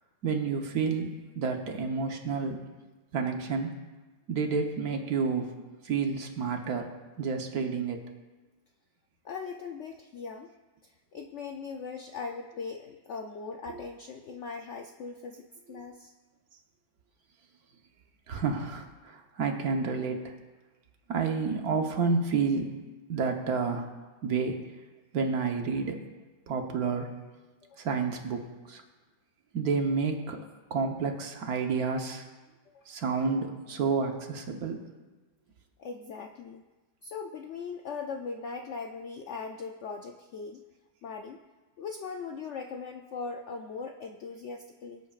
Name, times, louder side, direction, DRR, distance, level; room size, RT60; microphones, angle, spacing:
voice 1, 0.2-2.6 3.1-3.8 4.3-5.5 5.8-6.9 7.2-8.0 13.7-13.8 15.7-15.8 18.3-20.3 21.1-22.7 23.1-23.9 24.2-24.6 25.1-26.0 26.5-27.1 27.8-28.8 29.5-30.4 30.7-32.2 32.9-34.8, right 5 dB, 65° right, 4 dB, 1.5 m, -30 dB
voice 2, 9.2-10.5 10.8-16.1 27.7-27.8 32.7-32.8 35.8-36.6 37.0-40.6 41.0-41.4 41.8-45.0, left 5 dB, 70° left, 4 dB, 0.7 m, -39 dB
22.5 x 8.2 x 2.4 m, 1.2 s
omnidirectional pair, 1.7 m